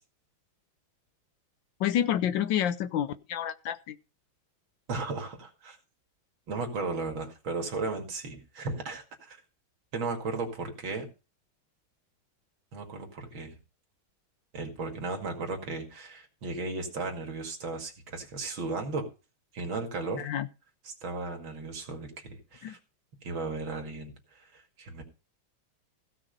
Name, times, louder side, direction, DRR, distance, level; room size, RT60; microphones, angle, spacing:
voice 1, 1.8-4.0 20.2-20.5 22.6-22.8, left 10 dB, 70° left, 1.4 m, -29 dB
voice 2, 4.9-5.8 6.5-9.4 9.9-11.1 12.7-13.6 14.5-19.1 19.5-20.2 20.9-22.8 23.2-25.0, right 3 dB, 75° right, 3.0 m, -35 dB
16.0 x 5.8 x 5.3 m
omnidirectional pair, 2.2 m